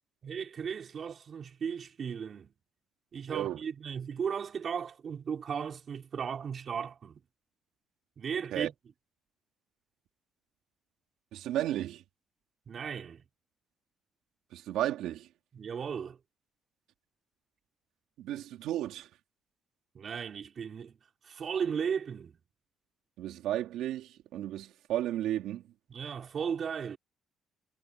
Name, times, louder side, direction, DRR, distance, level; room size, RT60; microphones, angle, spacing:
voice 1, 0.2-2.5 3.1-7.2 8.2-8.7 12.7-13.2 15.5-16.2 19.9-21.0 21.2-22.4 25.9-27.0, right 7 dB, 40° right, 4.7 m, -36 dB
voice 2, 3.3-3.6 8.5-8.7 11.3-12.0 14.5-15.3 18.2-19.1 23.2-25.6, right 12 dB, 85° right, 3.2 m, -33 dB
cardioid pair, 150°, 0 cm